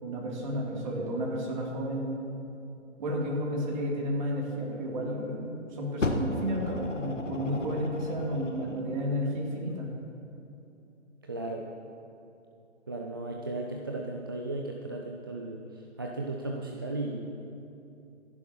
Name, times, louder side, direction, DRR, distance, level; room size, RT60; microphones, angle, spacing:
voice 1, 0.0-2.1 3.0-10.0, equal, 40° right, -3 dB, 3.3 m, -32 dB
Fire, 6.0-8.8 9.7-9.8, left 2 dB, 80° left, 1.4 m, -34 dB
voice 2, 11.3-11.7 12.9-17.3, right 2 dB, 20° right, 0 dB, 0.4 m, -35 dB
25.0 x 11.0 x 3.1 m, 2.8 s
figure-of-eight pair, 135°, 37 cm